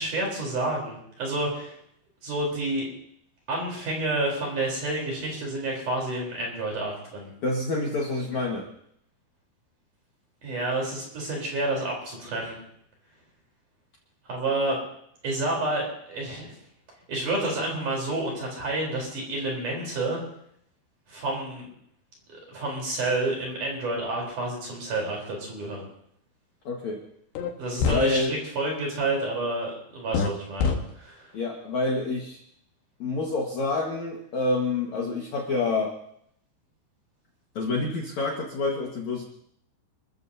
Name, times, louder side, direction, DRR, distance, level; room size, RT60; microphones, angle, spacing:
voice 1, 0.0-1.8 2.2-2.9 3.5-7.3 10.4-12.6 14.2-14.8 15.2-16.6 17.1-20.2 21.1-21.7 22.3-25.9 27.6-31.3, right 2 dB, 45° right, -1 dB, 5.2 m, -29 dB
voice 2, 7.4-8.7 26.6-27.0 27.9-28.3 31.3-32.4 33.0-36.0 37.5-39.2, left 3 dB, 55° left, -1 dB, 2.2 m, -27 dB
sound 1, 27.4-27.5 27.8-28.0 30.1-30.3 30.6-30.8, left 6 dB, 75° left, 3.7 m, -23 dB
29.5 x 14.5 x 2.8 m, 0.71 s
omnidirectional pair, 5.3 m